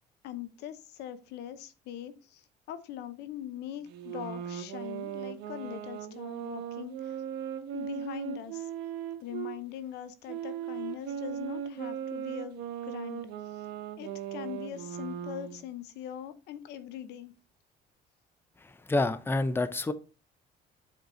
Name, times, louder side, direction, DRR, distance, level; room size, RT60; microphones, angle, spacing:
voice 1, 0.2-2.4 2.7-7.2 7.7-8.7 9.2-13.2 14.0-17.3, left 11 dB, 85° left, 0.9 m, -42 dB
sound 1, 3.9-9.6 10.3-15.6, right 9 dB, 85° right, 1.1 m, -38 dB
voice 2, 18.6-19.9, left 2 dB, 15° left, 0.6 m, -28 dB
7.9 x 4.6 x 3.9 m
cardioid pair, 110°, 17 cm